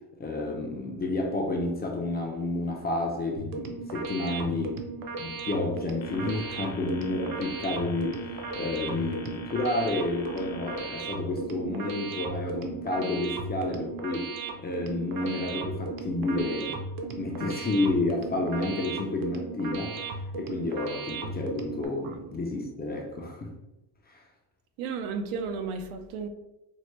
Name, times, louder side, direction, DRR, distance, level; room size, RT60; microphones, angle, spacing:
voice 1, 0.2-4.8 5.1-14.3 14.6-16.9 17.2-23.5 24.1-24.2, left 2 dB, 20° left, 1 dB, 0.4 m, -30 dB
sound 1, 3.4-21.9, right 3 dB, 45° right, 0.6 m, -36 dB
sound 2, 6.0-11.0, left 4 dB, 70° left, 0.9 m, -46 dB
voice 2, 24.8-26.3, right 5 dB, 85° right, 7 dB, 0.6 m, -33 dB
4.5 x 2.1 x 3.0 m, 0.96 s
cardioid pair, 115°, 49 cm